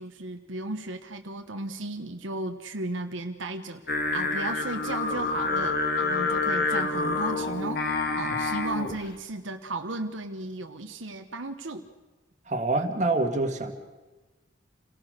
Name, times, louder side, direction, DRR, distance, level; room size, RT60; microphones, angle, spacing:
voice 1, 0.0-3.8 4.1-7.9 8.2-11.9, right 2 dB, 75° right, 5 dB, 1.2 m, -35 dB
Singing, 3.9-9.0, left 3 dB, 50° left, 2.2 m, -27 dB
voice 2, 12.5-13.7, right 2 dB, 35° right, 4 dB, 2.1 m, -26 dB
28.0 x 18.0 x 6.7 m, 1.2 s
head